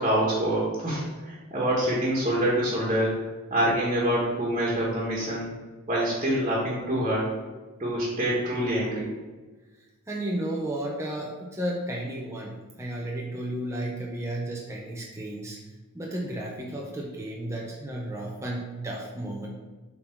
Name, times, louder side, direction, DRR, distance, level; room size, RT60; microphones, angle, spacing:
voice 1, 0.0-3.2 3.5-5.5 5.9-7.3 7.8-9.1, right 1 dB, 30° right, -5 dB, 1.5 m, -26 dB
voice 2, 10.1-15.6 15.9-19.5, right 1 dB, 15° right, -2 dB, 0.6 m, -33 dB
7.5 x 3.8 x 4.5 m, 1.3 s
head